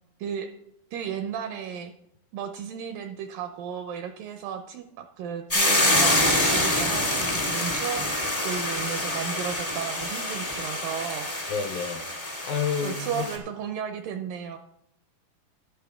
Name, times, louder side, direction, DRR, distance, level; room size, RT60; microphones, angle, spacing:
voice 1, 0.2-0.5 0.9-1.9 2.3-8.0 8.4-11.3 12.8-14.6, right 8 dB, 80° right, 7 dB, 2.0 m, -34 dB
Hiss / Boiling, 5.5-13.3, left 1 dB, 30° left, 0.6 m, -26 dB
voice 2, 11.5-12.1 12.4-13.2, left 6 dB, 75° left, 7 dB, 2.4 m, -29 dB
12.0 x 11.5 x 3.5 m, 0.78 s
omnidirectional pair, 4.5 m